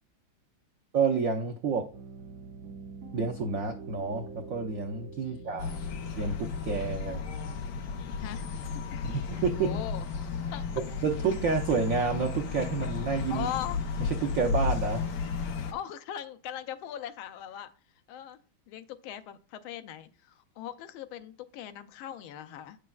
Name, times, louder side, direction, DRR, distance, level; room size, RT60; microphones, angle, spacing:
voice 1, 0.9-1.9 3.1-5.8 6.2-7.2 9.1-9.7 11.0-13.5 14.2-15.0, right 5 dB, 90° right, 4 dB, 0.7 m, -29 dB
Piano, 1.9-9.4, right 4 dB, 55° right, 1.5 m, -46 dB
voice 2, 5.2-5.9 7.1-7.6 8.2-8.8 9.6-10.1 10.5-10.7 13.3-13.8 15.7-17.7 18.1-18.4 18.7-22.8, left 10 dB, 85° left, 9 dB, 1.4 m, -40 dB
sound 1, 5.6-15.7, left 5 dB, 65° left, 1.2 m, -33 dB
9.3 x 6.4 x 2.3 m, 0.41 s
omnidirectional pair, 2.2 m